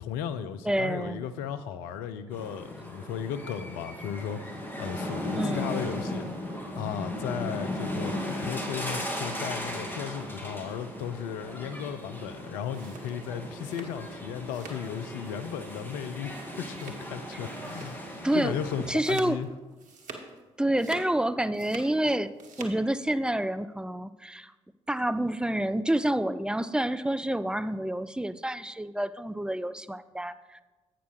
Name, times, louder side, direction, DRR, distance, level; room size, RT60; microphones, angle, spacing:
voice 1, 0.0-6.3 6.7-16.3 16.6-19.5, left 8 dB, 70° left, 11 dB, 0.5 m, -35 dB
voice 2, 0.6-1.2 5.3-5.8 18.2-18.5 18.9-19.4 20.6-22.3 22.6-24.5 24.9-30.6, right 1 dB, 5° right, 12 dB, 0.4 m, -28 dB
sound 1, 2.3-18.9, left 1 dB, 15° left, 1.9 m, -37 dB
sound 2, 12.5-14.9 15.2-15.6 15.9-16.1 16.7-17.3 17.6-18.0 18.4-20.4 20.7-22.0 22.3-22.8, right 3 dB, 55° right, 1.1 m, -45 dB
8.2 x 5.9 x 4.8 m, 1.2 s
figure-of-eight pair, 40°, 15 cm